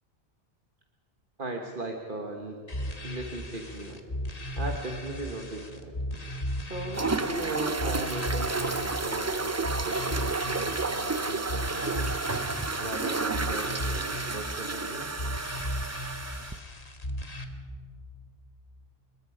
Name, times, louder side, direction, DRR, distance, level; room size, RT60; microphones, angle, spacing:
voice 1, 1.4-2.6 3.0-4.0 4.6-5.9 6.6-12.2 12.8-15.1, right 2 dB, 55° right, 2 dB, 1.6 m, -38 dB
sound 1, 2.7-17.4, equal, 35° left, 1.7 m, -36 dB
sound 2, 6.9-16.6, right 3 dB, 20° right, 0.5 m, -31 dB
26.5 x 22.0 x 5.0 m, 2.3 s
omnidirectional pair, 1.1 m